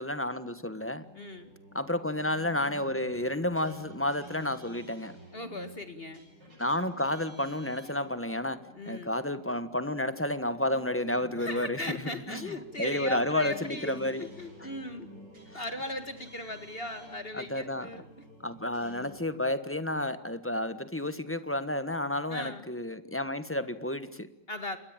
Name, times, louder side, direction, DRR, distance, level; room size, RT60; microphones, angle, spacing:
voice 1, 0.0-1.1 1.7-5.1 6.6-14.3 14.6-14.7 15.5-15.6 17.3-17.9 18.4-24.3, left 1 dB, 10° left, 1.2 m, -31 dB
sound 1, 1.0-19.1, right 1 dB, 70° right, 8.3 m, -52 dB
voice 2, 1.1-1.5 5.3-6.2 8.7-9.1 11.4-15.1 15.5-18.1 22.3-22.6 24.5-24.8, left 1 dB, 35° left, 2.1 m, -38 dB
28.5 x 22.5 x 8.9 m
omnidirectional pair, 1.9 m